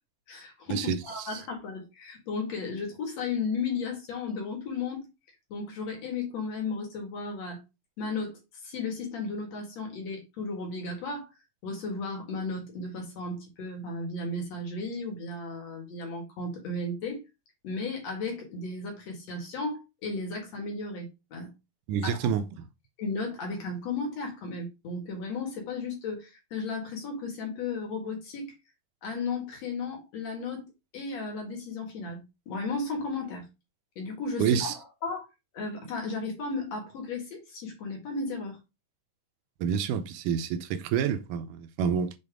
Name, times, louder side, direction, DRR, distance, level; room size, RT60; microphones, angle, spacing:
voice 1, 0.3-5.1 5.5-7.6 8.0-11.3 11.6-17.2 17.6-21.5 22.0-22.2 23.0-28.5 29.0-30.7 30.9-33.5 34.0-34.7 35.0-35.3 35.5-38.6, left 3 dB, 60° left, 3.0 m, -34 dB
voice 2, 21.9-22.7 34.4-34.7 39.6-42.1, right 8 dB, 85° right, 2.2 m, -28 dB
6.9 x 4.2 x 3.6 m
omnidirectional pair, 3.6 m